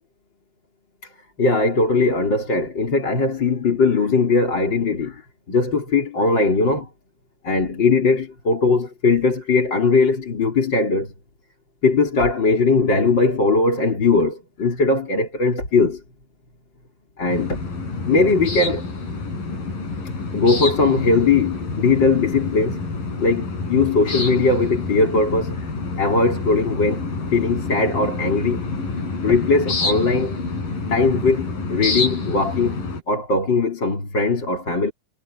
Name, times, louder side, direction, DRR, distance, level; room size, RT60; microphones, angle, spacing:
voice 1, 1.4-5.2 5.5-6.9 7.4-11.1 11.8-16.0 17.2-17.6 18.1-18.9 20.3-22.8 23.2-25.7 26.0-27.0 27.3-28.7 29.2-30.4 30.9-34.9, left 3 dB, 30° left, 4.3 m, -19 dB
sound 1, 17.3-33.0, left 3 dB, 65° left, 8.6 m, -28 dB
omnidirectional pair, 4.2 m